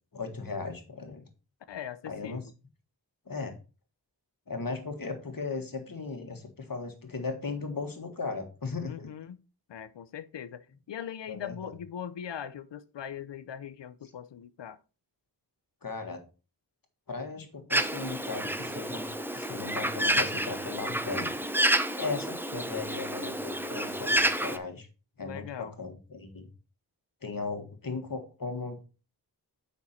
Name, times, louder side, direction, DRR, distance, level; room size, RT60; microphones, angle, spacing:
voice 1, 0.1-1.3 2.0-2.4 3.3-3.6 4.5-9.1 11.3-11.7 15.8-16.2 17.1-21.4 22.0-24.9 25.2-26.5 27.2-28.8, left 4 dB, 55° left, 1.7 m, -37 dB
voice 2, 1.7-2.4 8.9-9.4 9.7-14.8 25.2-25.7, left 9 dB, 85° left, 0.6 m, -41 dB
Bird, 17.7-24.6, right 1 dB, 5° right, 0.7 m, -29 dB
7.2 x 5.5 x 4.3 m
wide cardioid pair, 60°, 42 cm